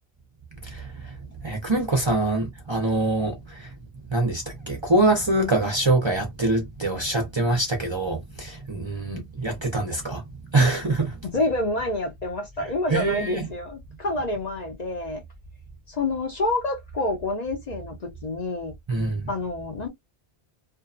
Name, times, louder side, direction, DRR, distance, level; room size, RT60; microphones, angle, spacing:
voice 1, 1.4-3.7 4.1-10.2 10.5-11.1 12.9-13.4 18.9-19.2, right 2 dB, 35° right, 0.5 m, -24 dB
voice 2, 11.3-15.2 15.9-18.7 19.3-19.9, left 2 dB, 45° left, 0.7 m, -28 dB
2.6 x 2.2 x 2.4 m
omnidirectional pair, 1.1 m